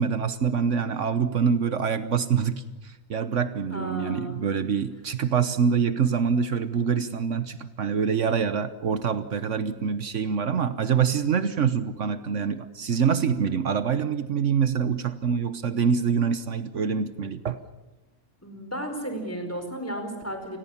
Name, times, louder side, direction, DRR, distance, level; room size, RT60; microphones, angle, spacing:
voice 1, 0.0-17.6, right 6 dB, 70° right, 12 dB, 1.4 m, -25 dB
voice 2, 3.7-4.4 18.4-20.6, right 1 dB, 10° left, 5 dB, 4.6 m, -33 dB
29.0 x 20.5 x 7.2 m, 1.0 s
omnidirectional pair, 1.3 m